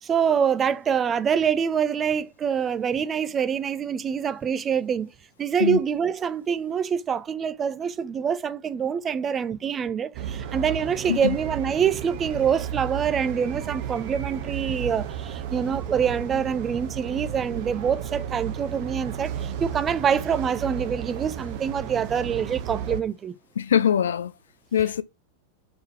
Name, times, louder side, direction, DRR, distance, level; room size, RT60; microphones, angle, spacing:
voice 1, 0.0-5.1 5.4-23.3, right 7 dB, 25° right, 0.6 m, -25 dB
sound 1, 10.1-23.0, right 9 dB, 45° right, 1.0 m, -33 dB
voice 2, 23.6-24.3 24.7-25.0, left 8 dB, 65° left, 0.6 m, -22 dB
5.0 x 3.9 x 5.8 m
figure-of-eight pair, 90°, 0 cm